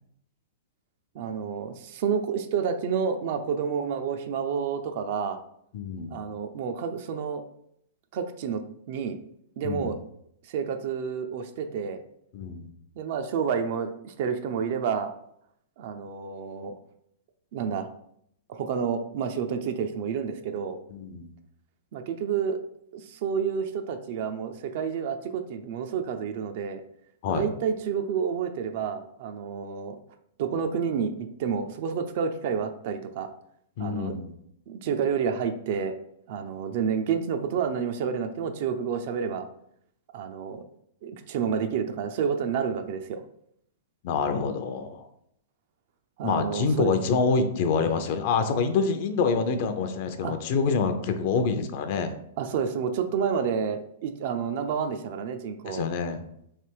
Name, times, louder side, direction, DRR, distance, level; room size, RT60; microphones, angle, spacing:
voice 1, 1.1-5.4 6.1-7.4 8.1-8.6 8.9-9.2 9.6-10.0 10.5-12.0 13.0-15.1 15.8-16.7 17.5-17.9 18.5-20.8 21.9-22.6 22.9-26.8 27.3-30.0 30.4-33.3 33.8-34.2 34.7-35.9 36.3-39.5 40.1-40.6 41.0-43.2 46.2-46.9 50.2-50.4 52.4-55.9, right 7 dB, 55° right, 7 dB, 0.4 m, -29 dB
voice 2, 5.7-6.2 9.6-9.9 12.3-12.7 20.9-21.3 27.2-27.5 33.8-34.3 44.0-45.1 46.2-52.2 55.7-56.2, left 5 dB, 50° left, 8 dB, 0.5 m, -26 dB
3.3 x 2.9 x 4.5 m, 0.73 s
hypercardioid pair, 140°, 0 cm